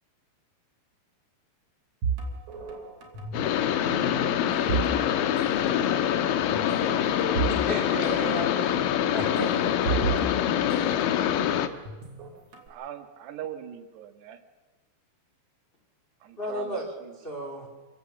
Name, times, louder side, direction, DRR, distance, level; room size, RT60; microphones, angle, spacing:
sound 1, 2.0-3.6 3.8-5.4 5.7-5.9 6.5-7.6 7.9-8.0 9.2-11.3 11.8-12.7, right 5 dB, 45° right, 3.6 m, -32 dB
sound 2, 3.3-11.7, left 10 dB, 75° left, 2.4 m, -25 dB
voice 1, 4.5-4.8 7.7-8.8 9.1-10.0 16.4-16.8 17.2-17.7, equal, 20° left, 1 dB, 1.7 m, -34 dB
voice 2, 5.5-5.6, left 3 dB, 35° left, 2 dB, 5.2 m, -47 dB
voice 3, 12.7-14.4 16.2-16.9, right 9 dB, 80° right, 7 dB, 3.5 m, -40 dB
27.0 x 16.5 x 7.2 m, 1.3 s
omnidirectional pair, 4.8 m